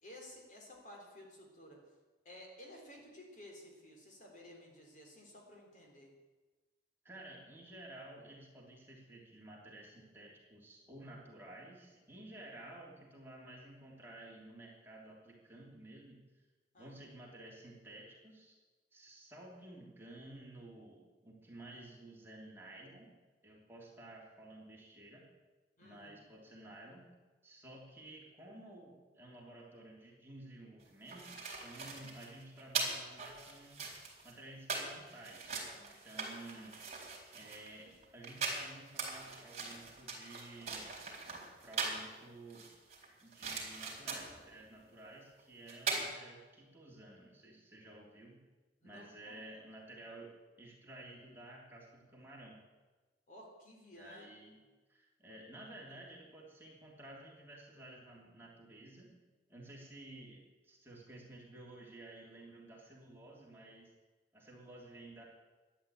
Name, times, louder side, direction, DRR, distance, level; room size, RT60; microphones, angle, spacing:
voice 1, 0.0-1.8 2.3-6.2 16.7-17.0 25.8-26.3 48.8-49.4 53.3-54.3, left 1 dB, 45° left, 0 dB, 3.5 m, -54 dB
voice 2, 7.0-16.2 16.8-18.6 18.9-23.1 23.4-25.3 25.8-27.1 27.4-33.8 34.2-36.8 37.3-40.8 41.6-42.7 43.2-48.4 48.8-52.6 53.9-54.5 54.9-59.1 59.5-63.9 64.3-65.2, right 1 dB, 15° right, -3 dB, 3.2 m, -53 dB
sound 1, 30.8-42.1 42.5-44.4 45.4-45.5 45.7-46.0, right 4 dB, 40° right, 4.0 m, -41 dB
13.5 x 10.5 x 8.8 m, 1.2 s
head